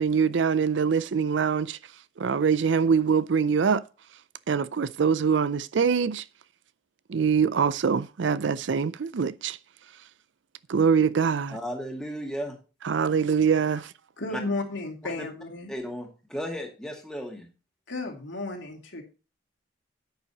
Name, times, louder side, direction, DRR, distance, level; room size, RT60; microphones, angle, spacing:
voice 1, 0.0-1.8 2.2-3.8 4.5-6.2 7.1-9.6 10.7-11.6 12.8-13.9, right 6 dB, 65° right, 0.4 m, -24 dB
voice 2, 11.5-12.5 14.3-14.4 15.2-15.3 15.7-17.5, equal, 5° left, 2.1 m, -34 dB
voice 3, 14.2-15.7 17.9-19.0, left 2 dB, 70° left, 2.8 m, -33 dB
10.5 x 8.9 x 2.9 m
head